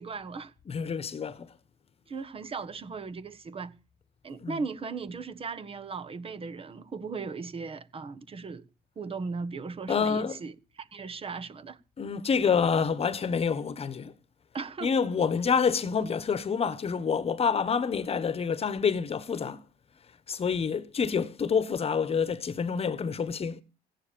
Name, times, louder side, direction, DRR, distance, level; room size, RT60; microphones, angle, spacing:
voice 1, 0.0-0.5 2.1-3.7 4.2-8.6 9.0-10.5 10.8-11.8 14.5-14.9, right 4 dB, 35° right, 1.3 m, -37 dB
voice 2, 0.7-1.5 4.4-4.6 9.9-10.4 12.0-14.1 14.8-19.6 20.3-23.6, left 6 dB, 35° left, 1.3 m, -27 dB
16.0 x 9.9 x 6.9 m
cardioid pair, 110°, 17 cm